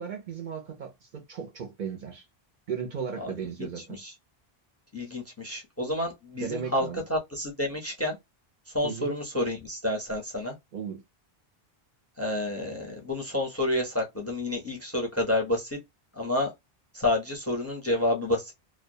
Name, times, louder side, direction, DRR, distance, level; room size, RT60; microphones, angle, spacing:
voice 1, 0.0-2.3 2.7-4.0 6.4-7.0 8.8-9.1 10.7-11.0, right 7 dB, 60° right, 0.6 m, -36 dB
voice 2, 4.9-8.2 8.7-10.5 12.2-15.8 16.2-16.5 16.9-18.5, left 1 dB, 20° left, 0.6 m, -29 dB
2.2 x 2.1 x 2.7 m
omnidirectional pair, 1.0 m